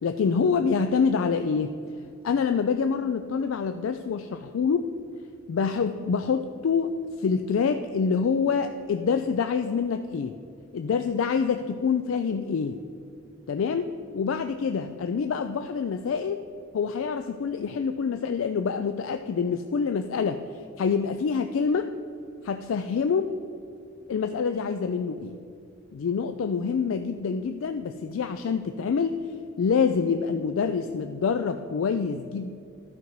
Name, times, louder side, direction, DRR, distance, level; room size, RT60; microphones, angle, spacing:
voice 1, 0.0-1.8 2.2-4.9 5.5-10.3 10.7-12.8 13.5-13.9 14.1-16.4 16.7-20.4 20.8-21.9 22.4-23.3 24.1-25.4 25.9-29.3 29.6-32.5, left 5 dB, 75° left, 8 dB, 0.4 m, -26 dB
12.0 x 5.2 x 4.6 m, 2.5 s
head